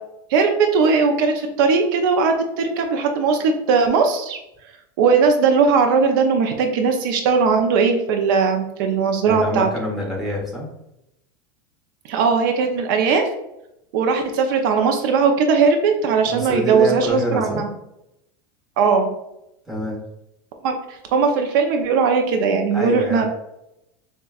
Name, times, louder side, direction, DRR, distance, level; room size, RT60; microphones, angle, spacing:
voice 1, 0.3-4.4 5.0-9.7 12.1-13.3 13.9-17.7 18.8-19.1 20.6-23.2, right 5 dB, 65° right, 4 dB, 0.6 m, -19 dB
voice 2, 9.3-10.7 16.2-17.6 19.7-20.0 22.7-23.3, equal, 5° right, -3 dB, 1.2 m, -26 dB
6.9 x 2.3 x 2.3 m, 0.84 s
supercardioid pair, 140°, 12 cm